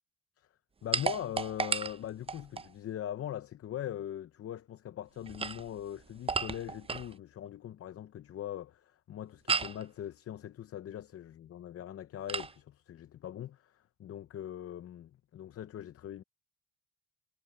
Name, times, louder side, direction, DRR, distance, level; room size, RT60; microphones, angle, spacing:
voice 1, 0.8-16.2, left 11 dB, 50° left, 0.7 m, -41 dB
sound 1, 0.9-2.7 5.2-7.1 9.5-9.8 12.3-12.5, right 5 dB, 20° right, 0.5 m, -34 dB
cardioid pair, 90°, 30 cm